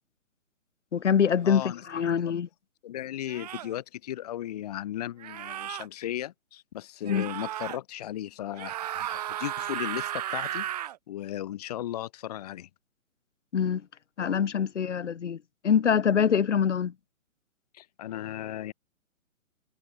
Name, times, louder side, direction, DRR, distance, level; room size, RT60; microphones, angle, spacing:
voice 1, 0.9-1.6 1.9-2.5 7.0-7.2 13.5-13.8 14.2-15.4 15.6-16.9, left 7 dB, 55° left, 2.4 m, -24 dB
voice 2, 1.4-1.8 2.2-2.4 2.8-12.7 17.7-18.7, left 12 dB, 30° left, 1.7 m, -36 dB
sound 1, 1.9-2.1 3.3-3.8 5.2-5.9 7.1-7.8 8.5-11.0, right 13 dB, 30° right, 2.0 m, -34 dB
hypercardioid pair, 165°, 42 cm